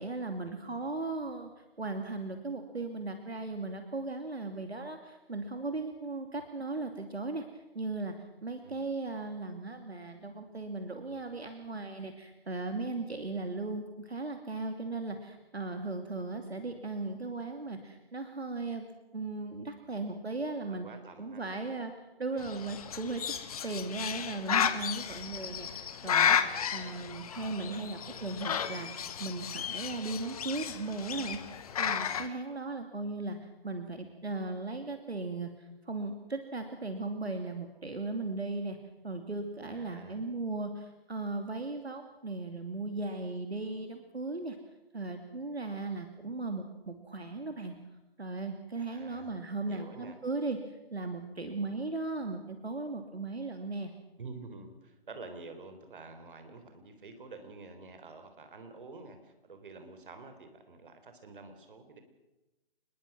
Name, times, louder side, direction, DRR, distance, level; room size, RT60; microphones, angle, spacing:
voice 1, 0.0-1.5 1.8-7.4 7.7-8.1 8.4-18.9 19.1-20.9 21.2-21.9 22.2-23.2 23.6-28.9 29.2-38.8 39.0-44.6 44.9-47.7 48.2-50.6 50.9-53.9, right 3 dB, 80° right, 6 dB, 2.6 m, -37 dB
voice 2, 20.7-21.5 23.6-24.0 27.6-28.4 39.7-40.2 48.9-49.4 49.6-50.2 54.2-62.0, right 3 dB, 55° right, 7 dB, 3.9 m, -49 dB
Bird, 22.4-32.3, left 8 dB, 35° left, 1.4 m, -33 dB
25.5 x 21.5 x 6.2 m, 1.0 s
figure-of-eight pair, 140°, 31 cm